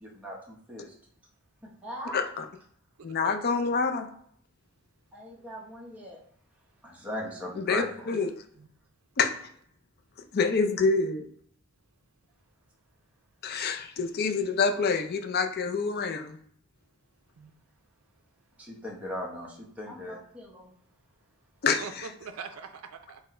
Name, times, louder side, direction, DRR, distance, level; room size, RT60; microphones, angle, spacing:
voice 1, 0.0-0.9 1.6-2.3 5.1-6.2 6.8-8.1 18.6-20.7, equal, 5° right, -4 dB, 0.8 m, -39 dB
voice 2, 2.0-2.5 3.0-4.1 7.6-8.3 9.2-9.3 10.3-11.3 13.4-16.4 21.6-22.1, left 4 dB, 45° left, 7 dB, 0.4 m, -27 dB
voice 3, 3.0-3.4 8.6-8.7 17.4-17.5 21.8-23.2, right 5 dB, 80° right, 8 dB, 0.5 m, -43 dB
4.2 x 2.1 x 4.2 m, 0.66 s
head